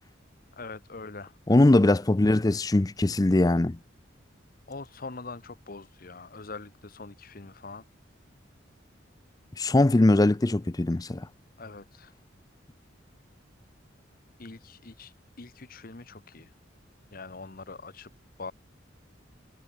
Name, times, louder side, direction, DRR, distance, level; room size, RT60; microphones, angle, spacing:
voice 1, 0.6-1.3 4.7-7.8 11.6-12.1 14.4-16.5 17.1-18.1 18.4-18.5, left 3 dB, 45° left, 1.1 m, -43 dB
voice 2, 1.5-3.8 9.6-11.3, left 2 dB, 20° left, 0.5 m, -21 dB
head